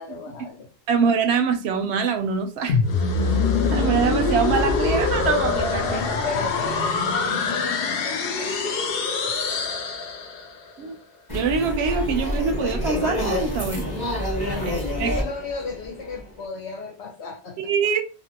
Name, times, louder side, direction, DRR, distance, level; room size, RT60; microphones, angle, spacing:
voice 1, 0.0-0.7 5.8-8.9 9.2-9.7 14.5-17.6, left 4 dB, 85° left, 3 dB, 1.1 m, -35 dB
voice 2, 0.9-2.8 3.7-6.0 10.8-11.0 11.3-13.9 15.0-15.1 17.7-18.1, right 6 dB, 80° right, 7 dB, 0.8 m, -24 dB
sound 1, 2.7-10.6, left 4 dB, 65° left, 0.7 m, -24 dB
sound 2, 11.3-16.4, left 1 dB, 25° left, 0.9 m, -27 dB
2.7 x 2.5 x 2.7 m, 0.35 s
omnidirectional pair, 1.1 m